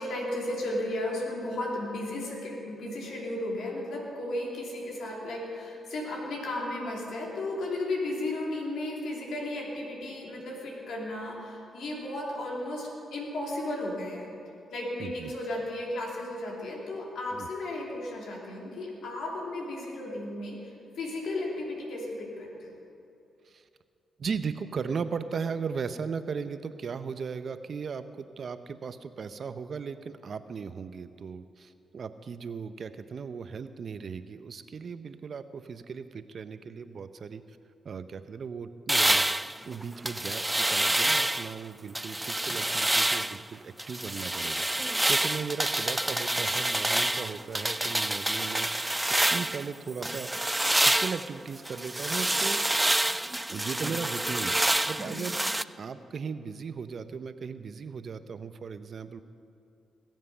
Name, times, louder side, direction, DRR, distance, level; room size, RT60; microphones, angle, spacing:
voice 1, 0.0-14.3 14.7-22.7 55.0-55.2, left 1 dB, 75° left, -2 dB, 3.1 m, -34 dB
voice 2, 15.0-15.3 17.3-17.5 23.5-23.6 24.2-37.4 37.8-39.3 39.7-49.0 49.3-50.5 50.8-52.6 53.5-55.4 55.8-59.2, right 5 dB, 60° right, 11 dB, 0.6 m, -37 dB
sound 1, 38.9-41.6 42.0-43.4 43.8-49.7 50.0-55.6, right 1 dB, 15° right, 0.3 m, -27 dB
20.5 x 7.5 x 5.7 m, 2.6 s
supercardioid pair, 55°, 0 cm